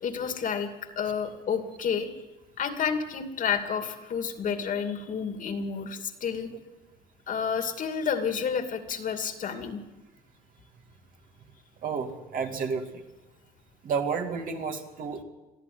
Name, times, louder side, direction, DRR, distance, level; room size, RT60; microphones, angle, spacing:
voice 1, 0.0-2.1 2.6-6.5 7.3-9.8, left 6 dB, 50° left, 6 dB, 2.6 m, -30 dB
voice 2, 11.8-13.0 13.8-15.2, right 5 dB, 55° right, 4 dB, 2.6 m, -31 dB
22.5 x 14.0 x 9.6 m, 1.1 s
cardioid pair, 110°, 17 cm